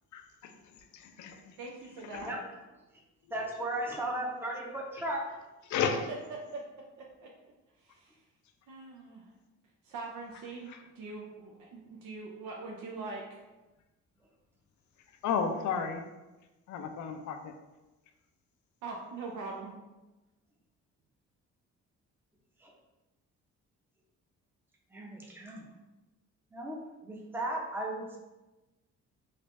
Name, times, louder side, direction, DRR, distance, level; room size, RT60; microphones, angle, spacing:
voice 1, 0.1-0.5 0.9-1.5 2.1-2.3 5.7-6.1 10.7-10.8 15.2-16.0 16.7-17.5, left 6 dB, 75° left, 0.5 m, -33 dB
voice 2, 1.6-2.3 6.3-6.6 7.2-7.3 7.8-8.2 8.7-9.3 9.8-13.4 18.8-19.7, right 3 dB, 80° right, 0.6 m, -42 dB
voice 3, 3.3-5.2 22.6-22.7 24.9-25.7 26.5-28.2, right 1 dB, 5° right, 0.6 m, -36 dB
3.3 x 2.5 x 3.2 m
cardioid pair, 90°, 30 cm